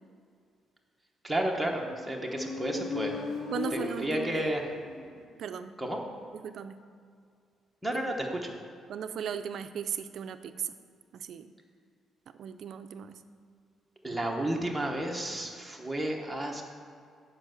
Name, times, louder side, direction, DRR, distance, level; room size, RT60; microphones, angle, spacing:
voice 1, 1.2-3.2 3.7-4.6 5.8-6.0 7.8-8.5 14.0-16.6, right 1 dB, 5° right, 0 dB, 1.0 m, -32 dB
Motorcycle, 1.6-5.3, left 4 dB, 45° left, 1.0 m, -38 dB
voice 2, 3.5-4.5 5.4-5.7 6.3-6.8 8.9-10.7 11.1-11.5 12.4-13.2, right 8 dB, 50° right, 10 dB, 0.5 m, -37 dB
10.0 x 5.5 x 6.5 m, 2.3 s
cardioid pair, 175°, 0 cm